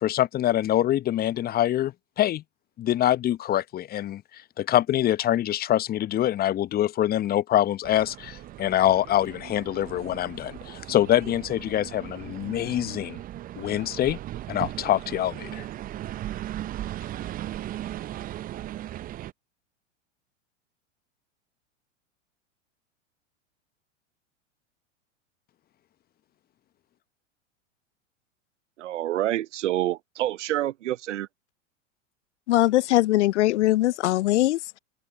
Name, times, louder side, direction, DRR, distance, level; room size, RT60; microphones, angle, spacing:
voice 1, 0.0-2.4 2.8-4.2 4.6-13.2 13.6-14.2 14.5-15.7, left 12 dB, 25° left, 0.8 m, -25 dB
sound 1, 7.8-19.3, right 13 dB, 25° right, 0.6 m, -37 dB
voice 2, 28.8-31.3, right 13 dB, 70° right, 0.9 m, -27 dB
voice 3, 32.5-34.8, left 16 dB, 65° left, 0.5 m, -21 dB
hypercardioid pair, 95°, 38 cm